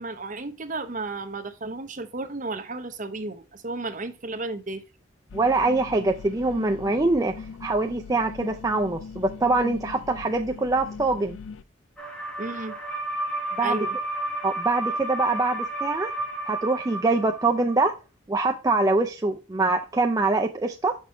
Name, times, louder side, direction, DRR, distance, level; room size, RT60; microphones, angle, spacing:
voice 1, 0.0-4.8 12.4-12.8 13.6-14.0, right 3 dB, 40° right, 0.8 m, -33 dB
sound 1, 5.3-11.6, left 5 dB, 80° left, 0.4 m, -41 dB
voice 2, 5.3-7.3 7.6-11.4 13.6-13.9 14.4-16.1 16.5-17.9 18.3-21.0, right 3 dB, 20° right, 0.4 m, -24 dB
sound 2, 12.0-17.8, right 2 dB, 5° left, 1.1 m, -31 dB
6.1 x 5.6 x 3.1 m
head